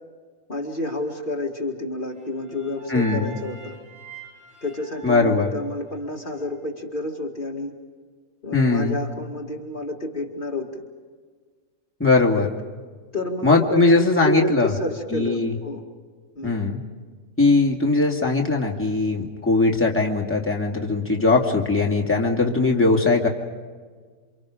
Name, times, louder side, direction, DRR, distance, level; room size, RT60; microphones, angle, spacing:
voice 1, 0.5-3.7 4.6-7.7 8.4-10.8 13.1-15.8 16.4-16.6, left 1 dB, 40° left, 0 dB, 2.5 m, -29 dB
sound 1, 2.2-6.4, right 3 dB, 65° right, 4.9 m, -43 dB
voice 2, 2.9-3.4 5.0-5.5 8.5-9.0 12.0-12.5 13.4-14.7 15.1-15.5 16.4-16.8 17.4-23.3, left 3 dB, 10° left, -1 dB, 2.5 m, -20 dB
28.5 x 26.5 x 5.1 m, 1.5 s
omnidirectional pair, 1.4 m